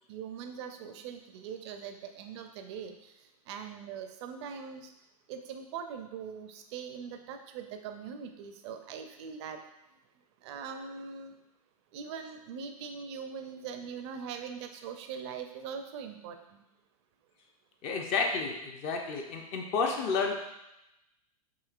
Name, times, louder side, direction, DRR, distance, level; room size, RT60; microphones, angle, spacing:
voice 1, 0.1-3.1 3.5-4.9 5.3-9.6 10.4-11.4 11.9-16.6, right 6 dB, 45° right, 6 dB, 0.5 m, -41 dB
voice 2, 17.8-20.3, left 4 dB, 35° left, 2 dB, 0.5 m, -31 dB
4.9 x 2.8 x 2.3 m, 0.89 s
figure-of-eight pair, 100°, 19 cm